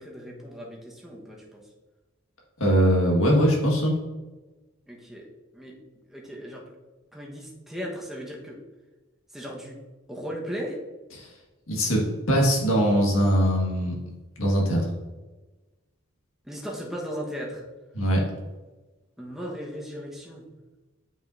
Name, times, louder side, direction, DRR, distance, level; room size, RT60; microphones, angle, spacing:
voice 1, 0.0-1.6 4.9-5.3 5.5-5.8 6.1-6.6 7.1-8.6 9.3-9.8 10.1-10.8 16.4-17.6 19.2-20.5, equal, ahead, -3 dB, 1.1 m, -36 dB
voice 2, 2.6-4.0 11.2-11.3 11.7-14.0 14.4-14.9 17.9-18.2, equal, 80° left, -2 dB, 1.7 m, -21 dB
8.8 x 5.2 x 2.6 m, 1.2 s
head